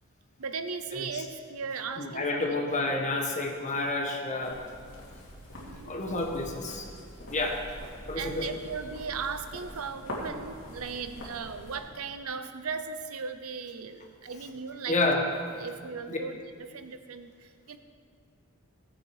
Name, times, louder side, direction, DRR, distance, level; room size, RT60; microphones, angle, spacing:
voice 1, 0.4-2.5 5.6-5.9 8.2-15.0 15.6-17.8, right 5 dB, 80° right, 9 dB, 0.8 m, -37 dB
voice 2, 0.9-1.2 2.0-4.6 5.9-6.9 7.3-7.6 8.1-8.5 14.9-15.2 16.1-16.2, left 2 dB, 35° left, 2 dB, 1.4 m, -29 dB
sound 1, 4.4-11.8, equal, 65° left, 2.7 m, -44 dB
16.5 x 8.3 x 4.9 m, 2.1 s
head